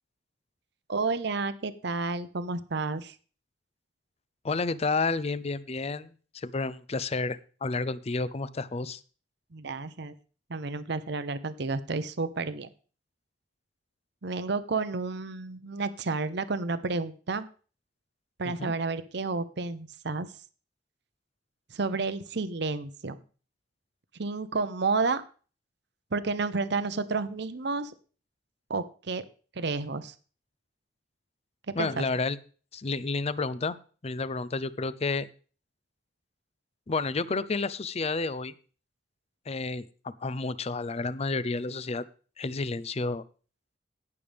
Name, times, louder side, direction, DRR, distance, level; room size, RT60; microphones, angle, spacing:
voice 1, 0.9-3.1 9.5-10.1 10.5-12.7 14.2-17.5 18.4-20.3 21.7-23.2 24.2-25.2 26.1-27.9 28.7-29.2 29.6-30.1 31.7-32.0, right 3 dB, 65° right, 12 dB, 0.8 m, -31 dB
voice 2, 4.4-9.0 18.4-18.7 31.7-32.4 32.7-33.8 34.0-35.3 36.9-38.5 39.5-42.0 42.4-43.2, left 3 dB, 35° left, 16 dB, 0.5 m, -30 dB
18.0 x 6.8 x 3.4 m, 0.39 s
head